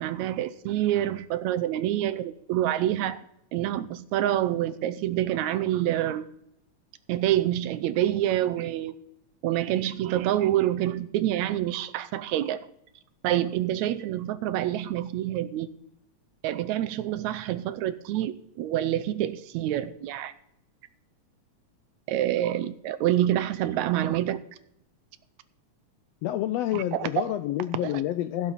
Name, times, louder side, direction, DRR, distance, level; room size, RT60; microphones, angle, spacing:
voice 1, 0.0-3.2 3.5-6.2 7.1-8.9 9.4-12.6 13.2-15.7 16.4-20.3 22.1-24.4 26.7-27.3 27.8-28.0, right 12 dB, 80° right, 13 dB, 1.9 m, -27 dB
voice 2, 26.2-28.5, left 13 dB, 80° left, 11 dB, 1.5 m, -28 dB
16.5 x 8.8 x 4.1 m, 0.77 s
omnidirectional pair, 3.4 m